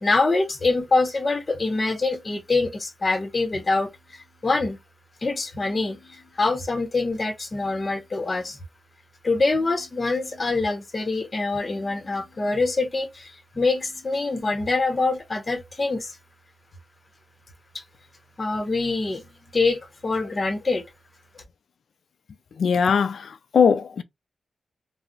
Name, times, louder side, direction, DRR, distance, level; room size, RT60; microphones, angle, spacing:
voice 1, 0.0-4.8 5.2-8.6 9.2-16.1 18.4-19.3 19.5-20.8, left 3 dB, 35° left, 0.8 m, -25 dB
voice 2, 22.6-24.0, left 6 dB, 75° left, 0.3 m, -20 dB
2.3 x 2.0 x 3.7 m
cardioid pair, 85°, 0 cm